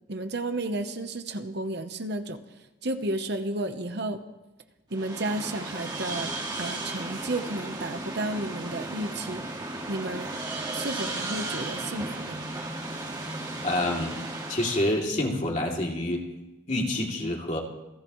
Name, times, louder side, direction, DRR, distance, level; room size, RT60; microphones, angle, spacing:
voice 1, 0.1-2.4 2.8-4.2 4.9-9.4 9.9-10.3 10.7-12.4, right 2 dB, 55° right, 7 dB, 1.0 m, -32 dB
sound 1, 4.9-15.0, right 2 dB, 20° right, 2.0 m, -35 dB
voice 2, 13.6-14.2 14.5-16.2 16.7-17.6, left 1 dB, 35° left, -1 dB, 2.8 m, -27 dB
29.0 x 14.5 x 3.2 m, 1.0 s
head